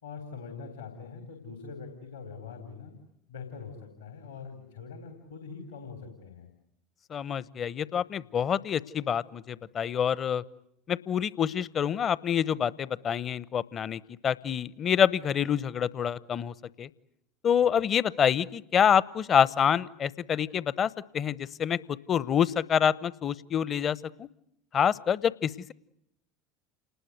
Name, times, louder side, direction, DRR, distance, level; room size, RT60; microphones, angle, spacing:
voice 1, 0.0-3.0 3.3-6.5, left 5 dB, 75° left, 5 dB, 4.2 m, -43 dB
voice 2, 7.1-10.4 10.9-16.9 17.4-21.8 22.1-24.3 24.7-25.7, left 8 dB, 35° left, 20 dB, 0.9 m, -27 dB
29.0 x 20.0 x 9.5 m, 0.78 s
figure-of-eight pair, 70°, 0 cm